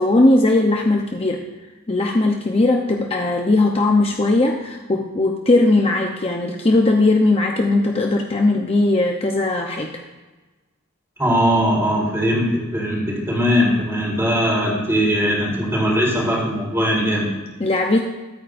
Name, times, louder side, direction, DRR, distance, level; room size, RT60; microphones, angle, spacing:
voice 1, 0.0-1.5 1.9-9.9 17.6-18.0, left 2 dB, 25° left, 2 dB, 0.8 m, -18 dB
voice 2, 11.2-17.3, equal, 15° right, -4 dB, 4.1 m, -20 dB
23.0 x 9.1 x 2.6 m, 1.2 s
head